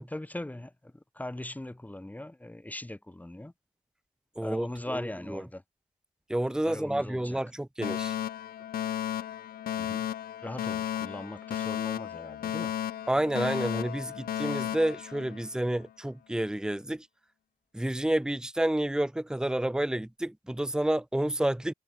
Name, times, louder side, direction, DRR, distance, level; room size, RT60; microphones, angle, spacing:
voice 1, 0.1-3.5 4.4-5.6 6.7-7.4 9.8-10.1 10.4-12.7, left 1 dB, 10° left, 3.6 m, -40 dB
voice 2, 4.4-4.7 4.9-5.4 6.3-8.1 13.1-17.1 17.7-21.7, right 1 dB, 5° right, 1.0 m, -29 dB
Alarm, 7.8-15.8, left 11 dB, 85° left, 1.5 m, -34 dB
cardioid pair, 90°, 15 cm